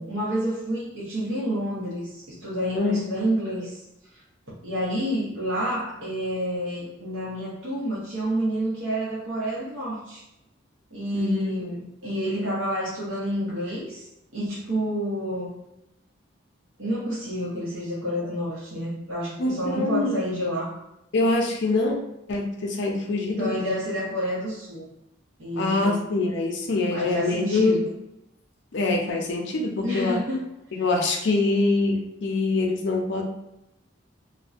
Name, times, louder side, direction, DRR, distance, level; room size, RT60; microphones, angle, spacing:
voice 1, 0.0-3.8 4.6-10.2 10.9-14.1 14.3-15.6 16.8-20.7 23.3-24.8 25.4-25.9 26.9-27.8 29.8-30.4, equal, 85° right, -7 dB, 0.8 m, -29 dB
voice 2, 11.1-11.5 19.4-20.2 21.1-22.0 22.3-23.5 25.6-27.8 28.7-30.2 30.7-33.2, left 2 dB, 60° left, 1 dB, 0.5 m, -24 dB
2.5 x 2.1 x 2.4 m, 0.86 s
head